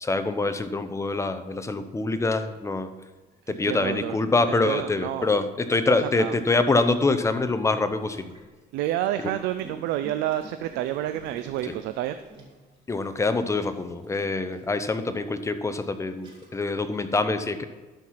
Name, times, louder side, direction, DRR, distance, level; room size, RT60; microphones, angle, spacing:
voice 1, 0.0-2.9 3.5-8.3 11.6-11.8 12.9-17.6, left 3 dB, 15° left, 10 dB, 0.7 m, -25 dB
voice 2, 3.5-4.2 4.6-5.3 5.9-6.3 8.7-12.2, right 13 dB, 90° right, 10 dB, 0.5 m, -29 dB
Gurgling, 6.0-8.6 9.2-12.8 13.4-14.9 15.6-15.7 16.1-16.7, right 3 dB, 25° right, 2.6 m, -50 dB
12.0 x 4.7 x 5.8 m, 1.3 s
cardioid pair, 110°, 17 cm